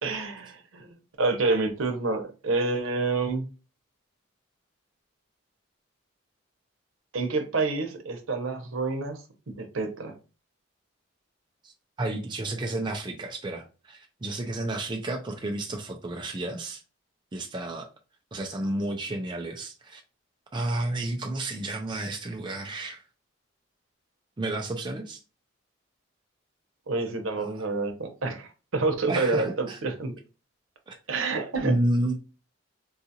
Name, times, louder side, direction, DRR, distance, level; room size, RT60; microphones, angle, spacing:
voice 1, 0.0-3.5 7.1-9.2 9.6-10.1 26.9-30.1 31.1-31.7, right 3 dB, 85° right, 0.8 m, -28 dB
voice 2, 12.0-16.8 17.3-17.9 18.3-20.0 20.5-23.0 24.4-25.2 27.4-27.7 29.1-29.8 30.9-31.0 31.6-32.1, right 1 dB, 25° right, 0.4 m, -31 dB
3.7 x 2.4 x 2.7 m
head